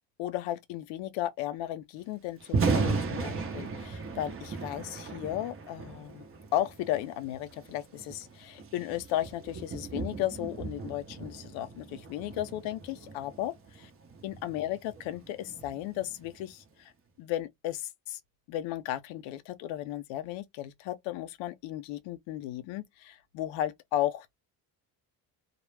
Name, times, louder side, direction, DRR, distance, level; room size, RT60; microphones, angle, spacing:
voice 1, 0.2-6.3 6.5-13.9 14.2-16.9 17.2-18.2 18.5-24.3, left 13 dB, 90° left, 0.5 m, -35 dB
Thunder, 2.4-16.5, right 4 dB, 30° right, 0.7 m, -36 dB
2.1 x 2.0 x 3.1 m
cardioid pair, 90°, 44 cm